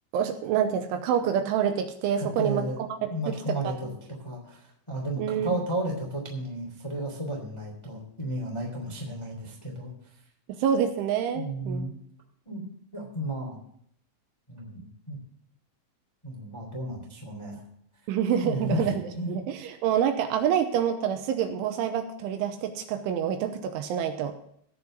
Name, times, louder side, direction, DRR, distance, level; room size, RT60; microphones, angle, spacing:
voice 1, 0.1-2.6 3.3-3.6 5.2-5.6 10.5-11.8 18.1-19.0 19.3-24.4, right 8 dB, 80° right, 7 dB, 3.1 m, -27 dB
voice 2, 2.2-3.9 4.2-9.9 11.3-11.9 12.4-13.6 14.5-15.2 16.2-17.6 18.4-19.3, right 1 dB, 15° left, 0 dB, 1.2 m, -33 dB
17.0 x 5.6 x 6.5 m, 0.66 s
omnidirectional pair, 5.9 m